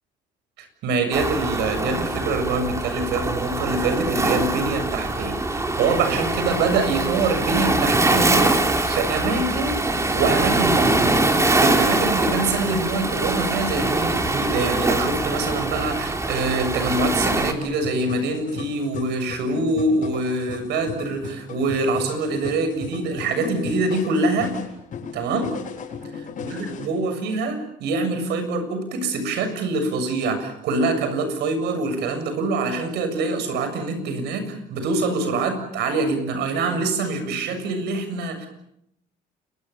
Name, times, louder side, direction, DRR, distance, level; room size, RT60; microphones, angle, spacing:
voice 1, 0.6-8.6 8.9-9.8 10.1-11.1 11.5-24.5 25.1-25.6 26.1-38.5, right 3 dB, 80° right, 9 dB, 7.2 m, -25 dB
Waves surf, 1.1-17.5, right 2 dB, 15° right, 3.5 m, -23 dB
sound 1, 17.5-26.9, left 5 dB, 50° left, 7.5 m, -37 dB
29.0 x 24.0 x 7.1 m, 0.78 s
cardioid pair, 110°, 17 cm